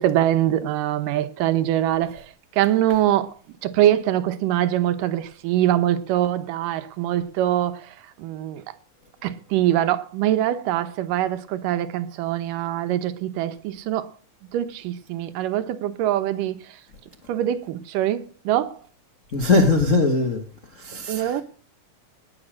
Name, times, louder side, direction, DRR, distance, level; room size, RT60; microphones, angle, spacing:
voice 1, 0.0-3.3 3.6-8.6 9.2-14.1 14.5-16.8 17.3-18.8 21.1-21.4, right 12 dB, 80° right, 2.5 m, -23 dB
voice 2, 19.3-20.4 20.8-21.4, left 3 dB, 70° left, 0.7 m, -20 dB
19.0 x 7.0 x 6.4 m
omnidirectional pair, 3.8 m